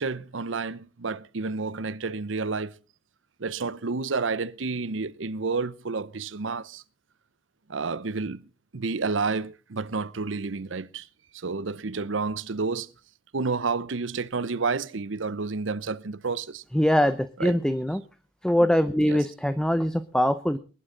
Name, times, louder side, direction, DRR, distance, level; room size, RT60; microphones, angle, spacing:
voice 1, 0.0-2.7 3.4-6.8 7.7-8.5 8.7-11.1 11.3-12.9 13.3-16.6 17.4-17.6 19.0-19.2, right 4 dB, 85° right, 0.8 m, -30 dB
voice 2, 16.7-18.0 18.4-20.6, equal, 5° left, 0.7 m, -23 dB
20.5 x 11.5 x 3.8 m
head